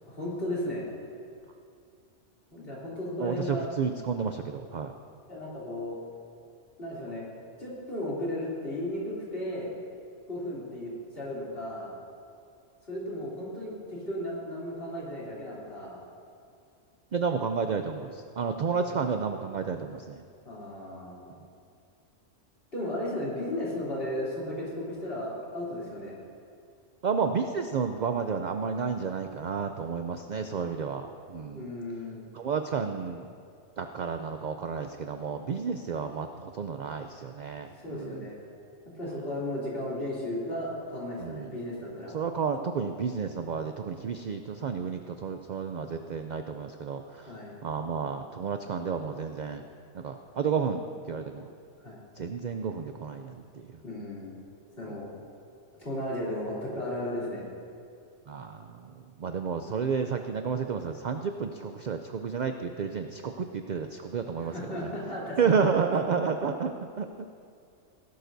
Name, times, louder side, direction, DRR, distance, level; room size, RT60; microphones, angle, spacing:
voice 1, 0.1-0.8 2.5-3.6 5.3-6.0 6.8-7.2 7.6-9.7 10.3-11.9 12.9-16.0 20.4-21.3 22.7-26.2 31.5-32.3 37.8-38.4 39.0-42.1 47.3-47.5 51.8-52.0 53.8-54.4 54.8-55.1 55.8-57.5 64.4-65.4, left 1 dB, 50° left, -7 dB, 3.3 m, -35 dB
voice 2, 3.2-4.9 17.1-20.2 27.0-31.7 32.3-33.3 33.8-38.3 39.1-39.2 41.2-41.6 42.1-47.3 47.6-49.7 49.9-51.4 52.2-53.8 58.3-64.5 65.4-67.3, right 6 dB, 65° right, 6 dB, 0.4 m, -31 dB
17.5 x 11.5 x 2.7 m, 2.4 s
omnidirectional pair, 1.3 m